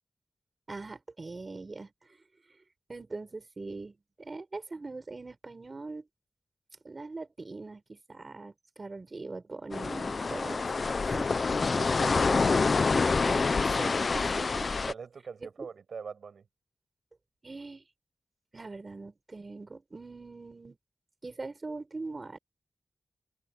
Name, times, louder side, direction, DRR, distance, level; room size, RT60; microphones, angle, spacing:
voice 1, 0.7-2.2 2.9-6.1 6.8-11.3 13.3-13.5 13.8-14.7 15.6-15.7 17.4-17.8 18.5-20.8 21.2-22.4, right 3 dB, 35° right, 7.1 m, -42 dB
sound 1, 9.7-14.9, left 4 dB, 45° left, 0.6 m, -27 dB
voice 2, 11.6-12.7 14.9-16.4, right 6 dB, 85° right, 5.7 m, -42 dB
wide cardioid pair, 160°, 0 cm